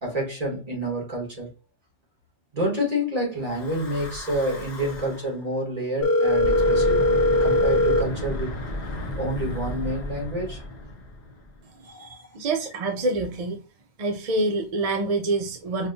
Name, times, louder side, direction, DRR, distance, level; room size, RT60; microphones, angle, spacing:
voice 1, 0.0-1.5 2.5-7.0 7.4-8.5 9.2-10.6 11.9-12.2 12.6-12.7, equal, 35° right, 1.6 m, -28 dB
Breathing / Wind, 3.4-5.3 6.2-11.6, left 1 dB, 45° left, 0.7 m, -33 dB
Telephone, 6.0-8.0, left 1 dB, 70° left, 1.0 m, -20 dB
voice 2, 12.3-13.6 14.0-15.9, right 2 dB, 50° right, 0.4 m, -26 dB
5.4 x 2.3 x 2.6 m
omnidirectional pair, 1.2 m